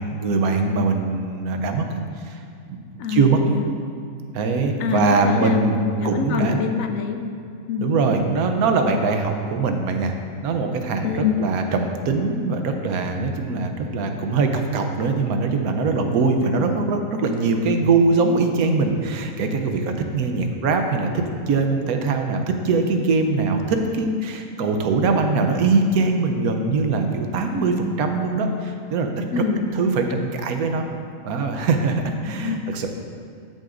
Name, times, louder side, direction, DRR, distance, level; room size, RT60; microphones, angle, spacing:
voice 1, 0.0-1.9 2.2-2.4 2.7-3.4 4.3-5.7 6.0-6.6 7.8-10.1 10.4-29.2 29.7-30.9 31.2-32.9, right 3 dB, 85° right, 5 dB, 1.2 m, -22 dB
voice 2, 3.0-3.6 4.8-7.2 7.7-7.9 11.0-11.4 16.5-16.8 27.5-27.9 29.3-29.7 32.2-32.7, left 6 dB, 70° left, 6 dB, 1.0 m, -26 dB
12.5 x 6.5 x 2.5 m, 2.4 s
omnidirectional pair, 1.5 m